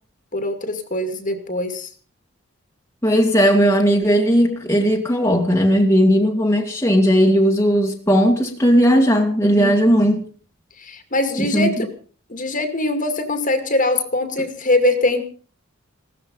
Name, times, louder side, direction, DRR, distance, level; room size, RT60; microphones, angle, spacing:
voice 1, 0.3-1.9 9.5-9.8 10.8-11.9 12.3-15.2, left 2 dB, 40° left, 7 dB, 2.3 m, -22 dB
voice 2, 3.0-10.2 11.4-11.7, equal, 15° left, 1 dB, 2.1 m, -16 dB
17.0 x 13.5 x 5.4 m, 0.41 s
head